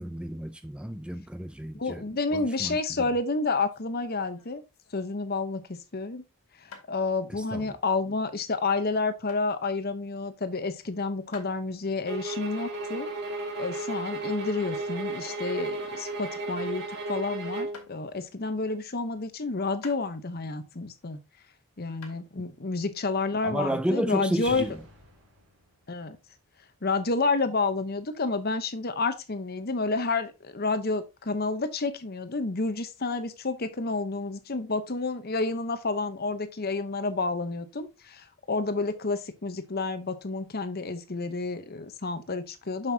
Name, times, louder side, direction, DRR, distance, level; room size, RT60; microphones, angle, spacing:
voice 1, 0.0-2.0 2.3-2.8 7.3-7.6 23.4-24.7, equal, 5° right, 0.3 m, -31 dB
voice 2, 1.7-4.6 4.9-6.2 6.6-13.1 13.6-21.2 21.8-24.8 25.9-26.2 26.8-42.9, left 3 dB, 45° left, 0.9 m, -30 dB
sound 1, 3.7-5.4 6.7-6.9 9.3-9.5 11.3-11.6 14.8-16.2 16.5-16.9 17.7-17.9 19.8-20.4 21.0-21.5 22.0-22.2, left 5 dB, 90° left, 1.9 m, -50 dB
sound 2, 12.1-17.8, right 2 dB, 50° right, 2.2 m, -34 dB
sound 3, 23.7-24.0 24.3-27.1 28.2-28.3, equal, 75° right, 4.1 m, -52 dB
7.1 x 6.7 x 2.8 m
head